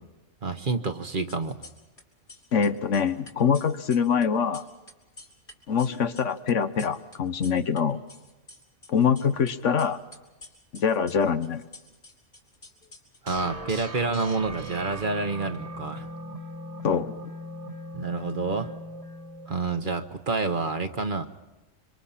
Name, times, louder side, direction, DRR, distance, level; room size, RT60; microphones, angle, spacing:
voice 1, 0.4-1.6 13.2-16.1 17.9-18.7 19.5-21.3, right 3 dB, 45° right, 9 dB, 1.2 m, -28 dB
sound 1, 1.1-2.0 2.3-7.8 8.1-9.5 9.8-13.5, left 2 dB, 45° left, 3.5 m, -48 dB
voice 2, 2.5-4.6 5.7-8.0 8.9-10.0 10.7-11.6 16.8-17.1, left 6 dB, 75° left, 11 dB, 1.3 m, -24 dB
sound 2, 13.3-20.2, equal, 30° right, 1.5 m, -39 dB
26.5 x 25.0 x 5.8 m, 1.1 s
omnidirectional pair, 1.3 m